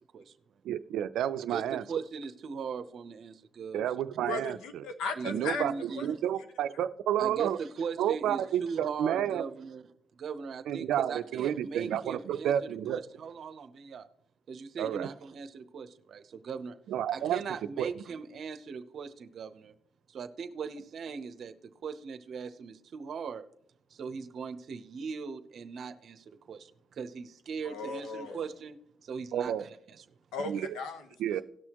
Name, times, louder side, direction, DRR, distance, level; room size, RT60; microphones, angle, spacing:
voice 1, 0.0-0.6 1.5-3.8 5.2-6.1 7.2-9.9 10.1-14.1 14.5-16.8 17.1-19.7 20.1-21.5 21.8-23.5 23.9-30.0, right 5 dB, 60° right, 0.8 m, -40 dB
voice 2, 0.6-1.8 3.7-4.6 5.2-7.6 8.0-9.5 10.7-13.0 14.8-15.1 16.9-17.4 17.8-17.9 29.3-29.6 30.5-30.7 31.2-31.4, right 10 dB, 80° right, 0.5 m, -30 dB
voice 3, 4.2-5.6 5.9-6.1 27.6-28.5 30.3-31.4, left 4 dB, 90° left, 1.1 m, -37 dB
17.5 x 6.2 x 3.0 m
cardioid pair, 90°, 0 cm